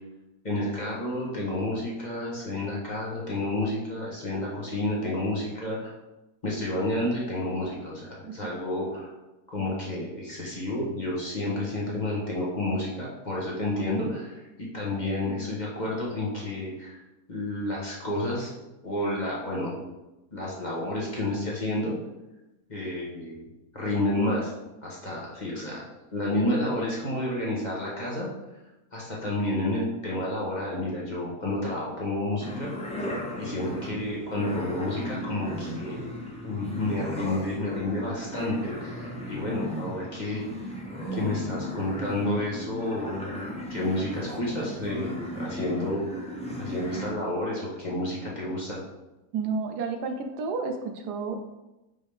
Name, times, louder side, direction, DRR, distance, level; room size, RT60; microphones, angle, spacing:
voice 1, 0.4-5.9 6.4-9.1 9.5-17.0 17.3-18.5 18.8-19.7 20.3-21.9 22.7-23.5 23.7-24.5 24.8-25.8 26.1-28.3 28.9-32.9 33.4-36.0 36.4-40.4 41.1-43.4 43.7-46.2 46.6-48.8, left 1 dB, 30° left, -5 dB, 1.4 m, -30 dB
sound 1, 32.4-47.1, equal, 10° left, 0.4 m, -36 dB
voice 2, 49.3-51.4, right 4 dB, 85° right, 4 dB, 1.3 m, -31 dB
5.4 x 5.1 x 3.5 m, 0.98 s
omnidirectional pair, 1.7 m